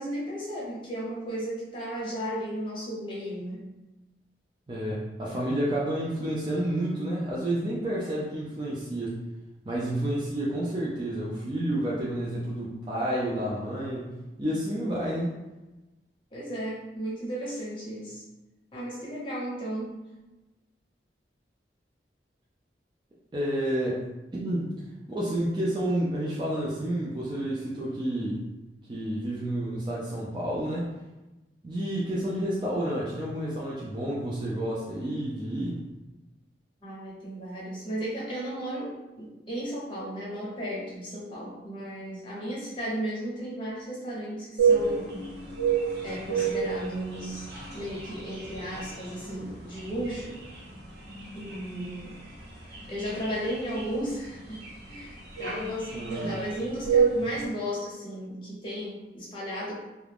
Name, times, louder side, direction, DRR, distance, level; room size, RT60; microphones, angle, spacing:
voice 1, 0.0-3.6 16.3-18.2 18.7-19.9 36.8-45.1 46.0-50.3 51.3-52.2 52.9-59.7, equal, 30° left, -6 dB, 0.8 m, -35 dB
voice 2, 4.7-9.1 9.6-15.3 23.3-24.7 25.1-28.4 28.9-30.9 31.6-35.8 55.9-56.4, right 1 dB, 25° right, -6 dB, 0.4 m, -30 dB
sound 1, 44.6-57.4, right 5 dB, 75° right, 0.9 m, -30 dB
2.4 x 2.1 x 3.3 m, 1.1 s
head